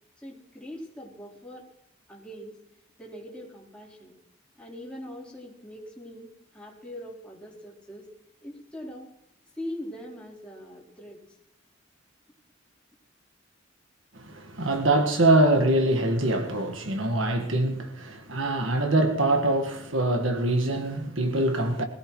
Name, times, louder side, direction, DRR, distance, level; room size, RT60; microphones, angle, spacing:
voice 1, 0.2-1.7 2.1-2.6 3.0-4.2 4.5-8.1 8.4-9.1 9.5-11.4, equal, 5° left, 4.0 m, -42 dB
voice 2, 14.1-21.8, right 1 dB, 80° right, 1.7 m, -24 dB
21.5 x 16.0 x 3.2 m
head